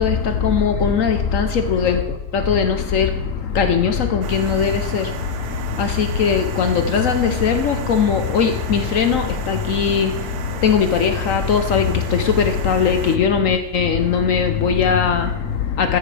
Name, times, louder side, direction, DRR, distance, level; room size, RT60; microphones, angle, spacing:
voice 1, 0.0-16.0, left 6 dB, 80° left, 0.7 m, -19 dB
sound 1, 4.2-13.2, right 8 dB, 80° right, 1.6 m, -34 dB
14.0 x 10.0 x 3.3 m
omnidirectional pair, 2.4 m